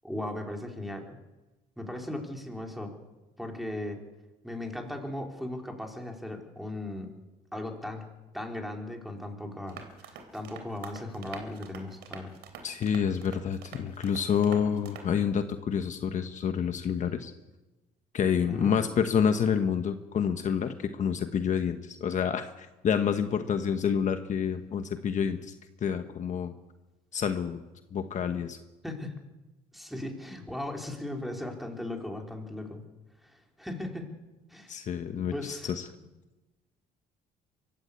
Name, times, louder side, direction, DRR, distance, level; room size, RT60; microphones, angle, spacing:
voice 1, 0.0-1.2 1.8-2.9 3.4-4.0 4.4-7.1 7.5-8.0 8.3-12.3 18.5-18.7 28.8-29.2 29.7-32.8 33.2-34.1 34.5-34.7 35.3-35.7, left 1 dB, ahead, 2 dB, 3.8 m, -37 dB
sound 1, 9.7-15.2, right 6 dB, 85° right, 3.5 m, -46 dB
voice 2, 12.6-17.3 18.1-25.5 25.8-26.5 27.1-27.6 27.9-28.6 34.7-35.8, left 7 dB, 45° left, 8 dB, 1.2 m, -28 dB
24.0 x 13.0 x 8.4 m, 1.1 s
cardioid pair, 110°, 17 cm